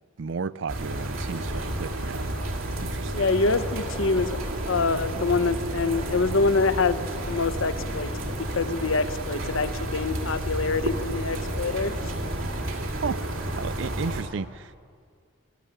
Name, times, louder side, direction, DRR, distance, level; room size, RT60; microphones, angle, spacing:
voice 1, 0.2-2.3 2.8-3.3 13.0-13.2 13.5-14.8, right 5 dB, 60° right, 18 dB, 0.4 m, -33 dB
sound 1, 0.7-14.2, right 1 dB, 80° right, 2.5 m, -31 dB
voice 2, 3.1-4.4 4.7-7.0 7.3-11.9, left 4 dB, 70° left, 12 dB, 0.9 m, -25 dB
sound 2, 3.5-9.3, right 1 dB, 20° right, 1.2 m, -45 dB
20.5 x 13.5 x 9.9 m, 2.1 s
head